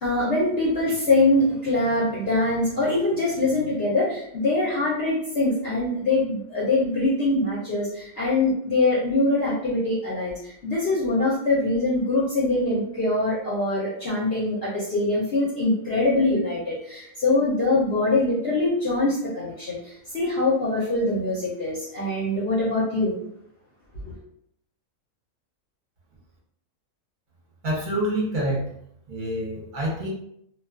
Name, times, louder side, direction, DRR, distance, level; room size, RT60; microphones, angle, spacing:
voice 1, 0.0-23.1 24.0-24.1, left 2 dB, 55° left, -7 dB, 0.8 m, -23 dB
voice 2, 27.6-28.7 29.1-30.1, right 1 dB, 45° right, -4 dB, 0.8 m, -27 dB
2.3 x 2.3 x 2.3 m, 0.71 s
omnidirectional pair, 1.4 m